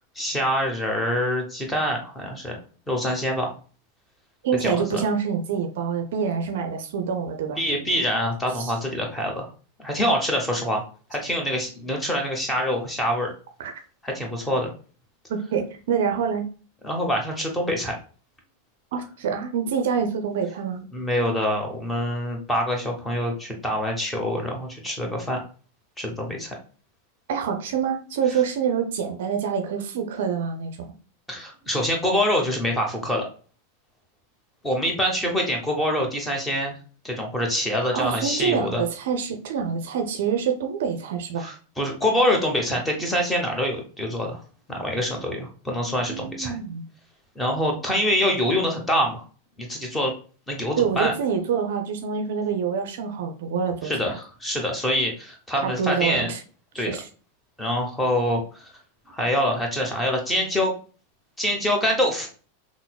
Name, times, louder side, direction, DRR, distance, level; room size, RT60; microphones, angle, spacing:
voice 1, 0.1-2.6 2.9-3.5 4.6-5.0 7.6-9.5 9.8-10.8 11.1-13.3 14.0-14.7 16.8-17.9 20.9-25.4 26.0-26.5 31.3-33.3 34.6-36.7 37.0-38.8 41.4-44.4 44.7-46.5 47.3-49.2 49.6-50.1 50.5-51.1 53.8-56.3 56.7-57.0 57.6-58.7 59.1-60.7 61.4-62.3, equal, 10° left, 1 dB, 1.0 m, -25 dB
voice 2, 4.4-7.6 8.6-8.7 13.6-13.7 15.5-16.4 18.9-20.8 27.3-30.9 37.9-41.6 46.1-46.8 50.8-54.1 55.6-56.4 56.8-57.1, right 7 dB, 55° right, 5 dB, 0.5 m, -26 dB
5.6 x 2.0 x 2.3 m, 0.38 s
figure-of-eight pair, 90°, 0 cm